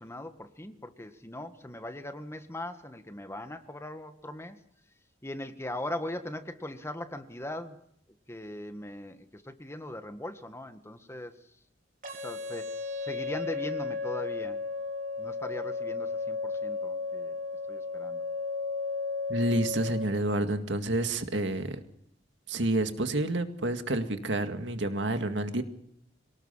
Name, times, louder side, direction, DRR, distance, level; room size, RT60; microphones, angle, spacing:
voice 1, 0.0-4.6 5.2-7.8 8.3-11.3 12.1-14.6 15.2-17.4 17.7-18.2, left 1 dB, 15° left, 8 dB, 1.7 m, -40 dB
sound 1, 12.0-20.0, left 4 dB, 50° right, 5.3 m, -34 dB
voice 2, 19.3-21.8 22.5-25.6, right 1 dB, 70° right, 7 dB, 2.1 m, -29 dB
25.0 x 19.0 x 5.7 m, 0.71 s
head